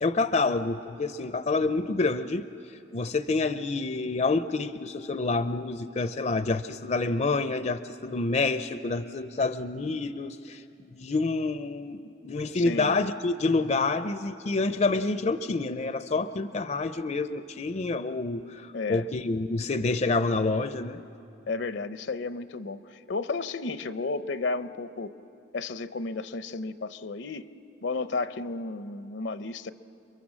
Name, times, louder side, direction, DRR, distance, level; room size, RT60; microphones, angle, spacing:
voice 1, 0.0-2.5 2.9-21.0, left 3 dB, 35° left, 11 dB, 0.5 m, -28 dB
voice 2, 12.5-12.9 18.7-19.1 21.5-25.1 25.5-27.5 27.8-29.7, left 3 dB, 70° left, 12 dB, 0.7 m, -33 dB
29.5 x 23.5 x 7.4 m, 2.7 s
head